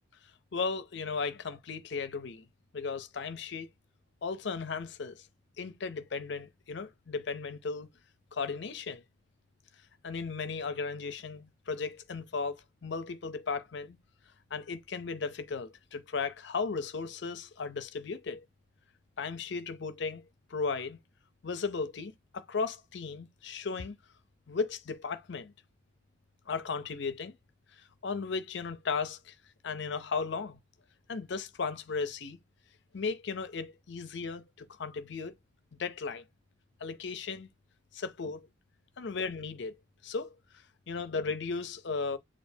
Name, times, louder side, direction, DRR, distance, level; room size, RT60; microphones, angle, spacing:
voice 1, 0.5-2.5 2.7-3.7 4.2-5.3 5.6-7.9 8.3-9.0 10.0-14.0 14.5-18.4 19.2-21.0 21.4-24.0 24.5-25.5 26.5-27.4 27.8-29.4 29.6-30.6 31.1-32.4 32.9-35.3 35.8-36.2 36.8-37.5 37.9-38.5 39.0-39.8 40.0-40.4 40.9-42.2, left 4 dB, 65° left, 0.6 m, -36 dB
6.8 x 2.5 x 2.7 m
head